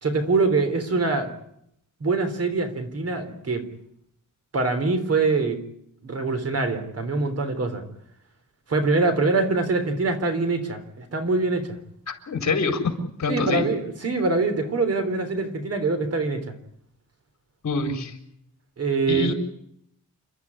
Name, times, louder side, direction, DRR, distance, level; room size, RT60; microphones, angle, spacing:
voice 1, 0.0-1.3 2.0-3.7 4.5-5.6 6.0-7.8 8.7-11.8 13.3-16.5 18.8-19.3, right 3 dB, 50° right, 8 dB, 3.7 m, -24 dB
voice 2, 12.1-12.8 13.2-13.6 17.6-18.1 19.1-19.3, left 3 dB, 60° left, 5 dB, 4.6 m, -25 dB
29.0 x 13.0 x 9.9 m, 0.72 s
wide cardioid pair, 140°, 31 cm